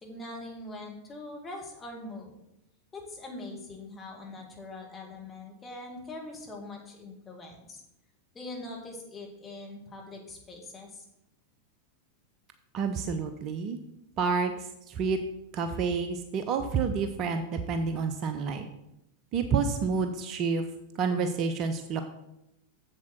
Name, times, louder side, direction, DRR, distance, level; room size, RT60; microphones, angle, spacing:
voice 1, 0.0-2.3 2.9-7.8 8.3-11.0, left 2 dB, 20° left, -1 dB, 2.3 m, -42 dB
voice 2, 12.7-13.8 14.2-14.5 14.9-15.2 15.5-18.7 19.3-20.6 21.0-22.0, right 5 dB, 35° right, 7 dB, 0.7 m, -29 dB
7.4 x 7.4 x 4.6 m, 0.84 s
figure-of-eight pair, 90°, 0 cm